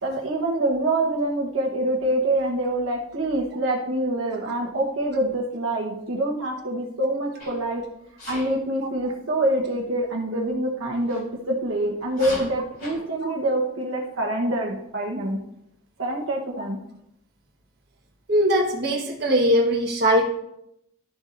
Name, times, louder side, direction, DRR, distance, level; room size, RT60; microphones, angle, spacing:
voice 1, 0.0-7.8 8.3-15.4 16.0-16.8, right 1 dB, 75° right, -2 dB, 1.2 m, -25 dB
Sneeze, 7.4-7.7 8.2-8.5 11.1-11.2 12.1-13.0, left 1 dB, 45° left, 3.5 m, -37 dB
voice 2, 18.3-20.3, equal, 50° right, 0 dB, 1.4 m, -20 dB
12.5 x 7.1 x 2.6 m, 0.78 s
head